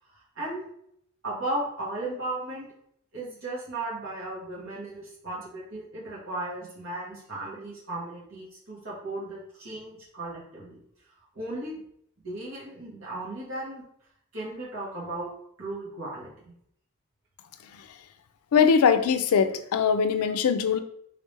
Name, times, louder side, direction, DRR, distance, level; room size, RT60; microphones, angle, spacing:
voice 1, 0.1-0.7 1.2-2.7 3.1-10.8 11.3-11.8 12.2-13.8 14.3-15.3 15.6-16.5 20.2-20.3, right 2 dB, 65° right, -6 dB, 1.5 m, -36 dB
voice 2, 18.5-20.8, left 6 dB, 85° left, 10 dB, 0.4 m, -22 dB
3.6 x 3.2 x 3.3 m, 0.70 s
head